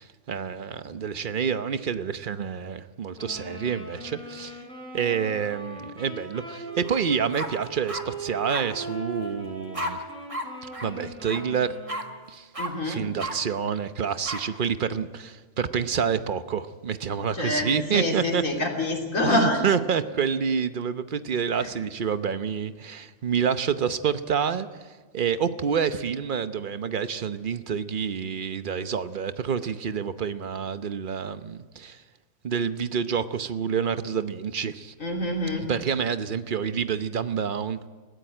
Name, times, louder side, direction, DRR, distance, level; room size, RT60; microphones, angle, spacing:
voice 1, 0.0-4.6 4.9-10.0 10.8-11.8 12.3-12.5 12.8-18.4 19.2-24.7 25.1-32.0 32.4-34.9 35.5-37.9, right 7 dB, 45° right, 12 dB, 0.9 m, -28 dB
Wind instrument woodwind instrument, 3.2-12.2, right 2 dB, 5° left, 6.5 m, -40 dB
sound 1, 6.8-7.0 7.3-8.0 8.5-8.6 9.7-9.9 10.3-10.5 10.7-10.9 11.2-11.4 11.9-12.0 12.5-12.7 13.2-13.3 14.2-14.4, right 1 dB, 25° right, 1.8 m, -32 dB
voice 2, 12.6-13.1 17.3-19.6 21.6-21.7 35.0-35.7, left 1 dB, 75° left, 2 dB, 3.5 m, -26 dB
21.0 x 15.0 x 9.0 m, 1.4 s
omnidirectional pair, 1.4 m